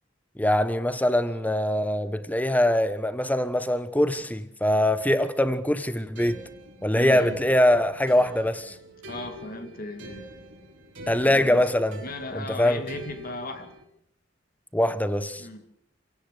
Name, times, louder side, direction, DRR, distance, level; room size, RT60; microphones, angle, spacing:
voice 1, 0.4-6.4 6.8-8.7 11.1-12.0 12.3-12.8 14.7-15.4, left 1 dB, 10° left, 1.2 m, -23 dB
sound 1, 6.2-13.8, right 1 dB, 65° right, 4.1 m, -45 dB
voice 2, 6.9-7.4 9.1-10.4 11.2-11.7 12.0-13.8 15.4-15.7, left 2 dB, 50° left, 2.1 m, -37 dB
28.0 x 17.0 x 6.5 m
head